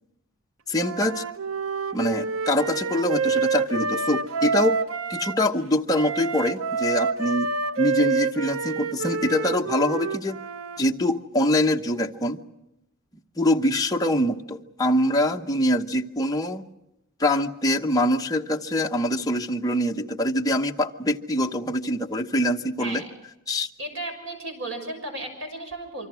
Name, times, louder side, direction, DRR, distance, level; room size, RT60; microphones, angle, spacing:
voice 1, 0.7-1.2 1.9-4.8 5.1-7.5 7.8-10.4 10.8-12.4 13.4-16.6 17.2-23.0 23.5-23.7, left 1 dB, 20° left, 3 dB, 1.0 m, -24 dB
Wind instrument woodwind instrument, 0.7-5.4 5.9-10.8, right 4 dB, 80° right, 0.9 m, -27 dB
voice 2, 23.8-26.1, right 2 dB, 65° right, 5 dB, 6.2 m, -34 dB
27.0 x 24.5 x 6.3 m, 0.90 s
head